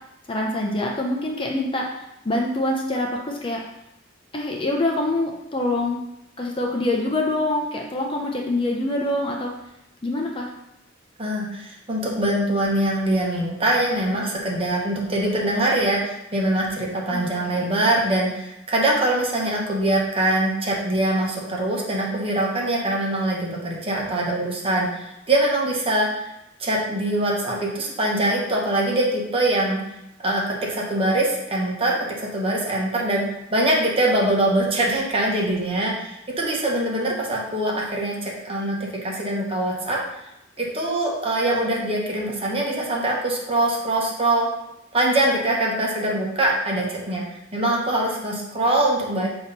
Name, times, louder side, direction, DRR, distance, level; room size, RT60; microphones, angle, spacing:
voice 1, 0.3-1.9 2.2-3.6 4.3-6.0 6.4-9.5 10.0-10.5 17.1-17.6, left 1 dB, 25° left, 0 dB, 0.7 m, -25 dB
voice 2, 11.2-26.3 26.6-29.8 30.2-33.3 33.5-40.0 40.6-44.5 44.9-47.2 47.5-49.3, right 1 dB, 30° right, -3 dB, 1.2 m, -23 dB
6.2 x 3.0 x 5.3 m, 0.86 s
head